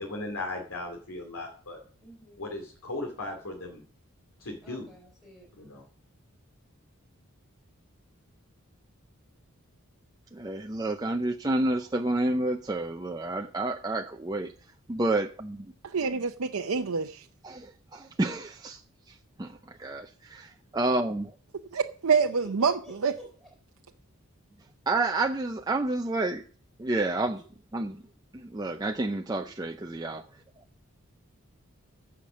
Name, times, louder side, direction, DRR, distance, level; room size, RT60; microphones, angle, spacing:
voice 1, 0.0-1.8 2.4-3.8 4.4-4.9 5.6-5.8, left 2 dB, 90° left, 2.6 m, -37 dB
voice 2, 2.0-2.4 4.6-5.5 22.4-23.5 27.3-27.4, equal, ahead, 3.6 m, -51 dB
voice 3, 10.3-14.5 14.9-15.7 17.4-18.8 19.4-20.1 20.7-21.3 24.9-26.4 26.8-27.4 27.7-28.0 28.3-30.2, right 2 dB, 15° right, 0.4 m, -29 dB
voice 4, 15.9-17.2 21.7-23.1, right 5 dB, 85° right, 0.6 m, -26 dB
15.0 x 5.8 x 6.3 m
head